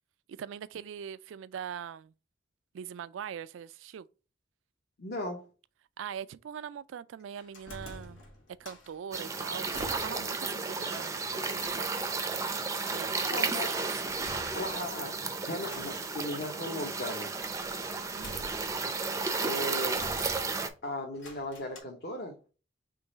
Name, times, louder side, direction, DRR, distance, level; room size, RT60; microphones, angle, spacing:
voice 1, 0.3-2.1 2.7-4.1 6.0-8.2 8.6-11.9 12.9-14.1 18.1-18.4, right 8 dB, 80° right, 0.3 m, -42 dB
voice 2, 5.0-5.4 13.3-13.7 14.5-15.2 15.5-17.3 19.4-20.0 20.8-22.4, left 1 dB, 55° left, 0.9 m, -36 dB
sound 1, 7.4-8.9 9.3-10.4 10.7-10.8 11.5-12.1 14.0-15.1 15.6-16.2 17.3-19.5 20.0-20.8 21.1-21.8, left 1 dB, 90° left, 1.6 m, -48 dB
A quiet seaside seagulls distant, 9.1-20.7, right 4 dB, 15° right, 0.4 m, -33 dB
3.8 x 3.1 x 3.9 m
head